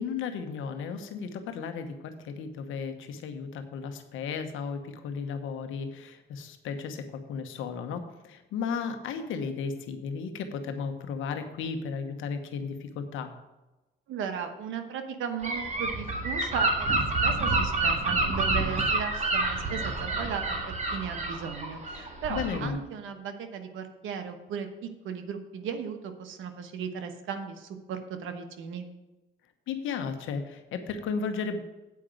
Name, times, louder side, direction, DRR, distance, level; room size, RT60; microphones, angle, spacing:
voice 1, 0.0-13.4 22.3-22.8 29.7-31.6, left 5 dB, 85° left, 7 dB, 1.1 m, -34 dB
voice 2, 14.1-28.9, right 7 dB, 85° right, 7 dB, 1.1 m, -36 dB
Gull seagull / Wind, 15.4-22.7, right 2 dB, 35° right, 1.9 m, -28 dB
8.3 x 5.1 x 7.6 m, 1.1 s
cardioid pair, 90°, 20 cm